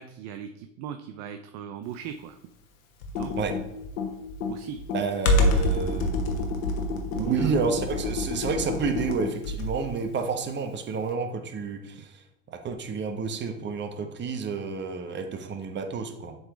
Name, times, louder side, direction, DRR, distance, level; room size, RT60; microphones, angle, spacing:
voice 1, 0.0-2.4 3.1-3.3 4.5-4.8 7.1-7.6, right 9 dB, 45° right, 7 dB, 0.5 m, -37 dB
Computer keyboard, 3.0-9.9, left 2 dB, 80° left, 1.4 m, -27 dB
voice 2, 4.9-6.5 7.0-16.3, right 5 dB, 30° right, 6 dB, 1.0 m, -30 dB
7.8 x 3.9 x 3.7 m, 0.82 s
hypercardioid pair, 100°, 39 cm